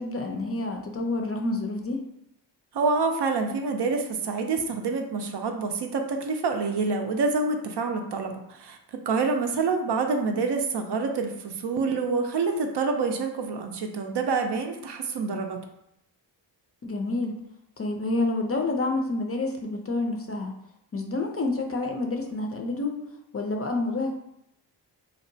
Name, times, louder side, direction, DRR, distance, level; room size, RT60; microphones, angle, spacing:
voice 1, 0.0-2.0 16.8-17.3 17.8-20.5 20.9-23.0 23.3-24.1, left 2 dB, 30° left, 2 dB, 0.4 m, -28 dB
voice 2, 2.7-8.8 9.1-15.6, right 4 dB, 60° right, 4 dB, 0.5 m, -27 dB
2.8 x 2.1 x 2.6 m, 0.78 s
cardioid pair, 45°, 46 cm